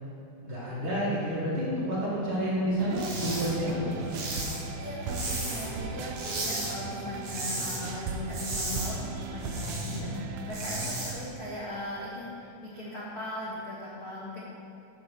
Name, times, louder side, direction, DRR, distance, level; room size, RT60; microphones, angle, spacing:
voice 1, 0.4-4.0 9.8-10.1, equal, 45° right, -9 dB, 2.4 m, -30 dB
sound 1, 2.8-11.1, right 3 dB, 85° right, 1.5 m, -38 dB
sound 2, 2.9-3.5 3.8-5.8 6.1-6.7 7.0-7.8 8.1-10.0 10.3-11.1, right 2 dB, 70° right, 3.3 m, -35 dB
voice 2, 4.8-14.4, left 1 dB, 55° left, -8 dB, 1.0 m, -39 dB
10.0 x 3.6 x 6.4 m, 2.9 s
omnidirectional pair, 3.6 m